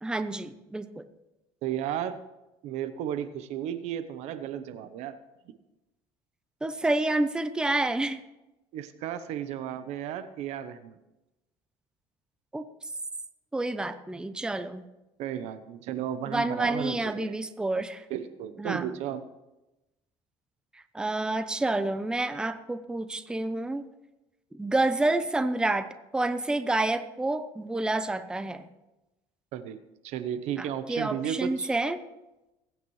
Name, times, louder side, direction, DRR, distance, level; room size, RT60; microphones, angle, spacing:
voice 1, 0.0-1.0 6.6-8.2 12.5-12.7 13.5-14.8 16.2-18.0 18.6-18.9 20.9-23.8 24.5-28.7 30.6-32.0, right 2 dB, 5° right, 11 dB, 0.6 m, -29 dB
voice 2, 1.6-2.2 2.6-5.2 8.7-11.0 15.2-17.3 18.1-19.2 29.5-29.8 30.0-31.7, right 10 dB, 70° right, 12 dB, 0.9 m, -34 dB
20.5 x 9.1 x 3.2 m, 0.99 s
cardioid pair, 115°, 12 cm